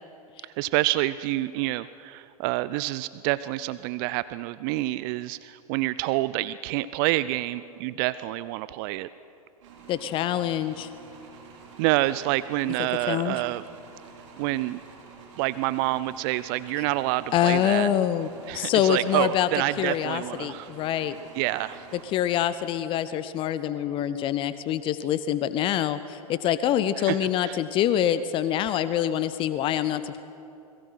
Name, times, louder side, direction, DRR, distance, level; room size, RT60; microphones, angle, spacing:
voice 1, 0.4-9.1 11.8-13.6 14.4-14.8 15.4-17.9 18.5-20.7 21.3-21.8 27.0-27.2 27.4-27.6, right 17 dB, 35° right, 16 dB, 0.5 m, -27 dB
sound 1, 9.6-22.6, right 4 dB, 55° right, 4.6 m, -48 dB
voice 2, 9.9-10.9 12.8-13.4 17.3-18.3 18.5-19.5 19.8-21.2 22.0-30.2, left 11 dB, 25° left, 14 dB, 0.7 m, -25 dB
28.5 x 22.0 x 5.8 m, 2.8 s
figure-of-eight pair, 100°, 19 cm